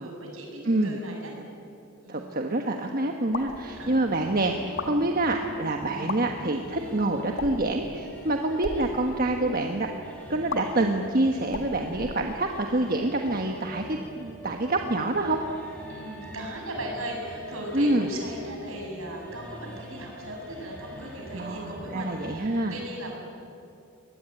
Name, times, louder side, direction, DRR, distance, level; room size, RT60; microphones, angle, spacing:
voice 1, 0.0-1.3 2.0-2.4 3.8-4.2 15.9-23.2, right 1 dB, 65° right, 0 dB, 7.0 m, -38 dB
voice 2, 0.6-1.0 2.1-9.9 10.3-15.4 17.7-18.1 21.3-22.7, right 2 dB, 45° right, 3 dB, 1.3 m, -26 dB
sound 1, 3.3-3.6 4.6-4.9 5.9-6.2 7.3-7.7 8.5-8.8 10.5-10.6 11.5-12.6, left 3 dB, 60° left, 2.0 m, -35 dB
sound 2, 3.5-22.5, equal, 5° left, 6.4 m, -44 dB
23.5 x 20.5 x 9.1 m, 2.6 s
head